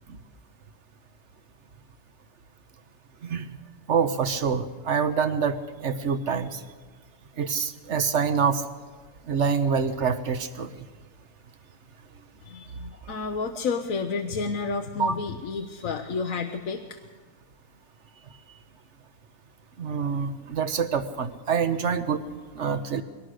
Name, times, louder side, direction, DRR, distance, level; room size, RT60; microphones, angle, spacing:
voice 1, 3.9-6.6 7.4-8.6 9.3-10.7 15.0-15.2 19.8-22.2 22.6-23.0, right 6 dB, 55° right, 11 dB, 1.2 m, -26 dB
voice 2, 12.4-17.0, left 4 dB, 65° left, 5 dB, 1.3 m, -31 dB
22.0 x 19.0 x 6.4 m, 1.4 s
omnidirectional pair, 1.6 m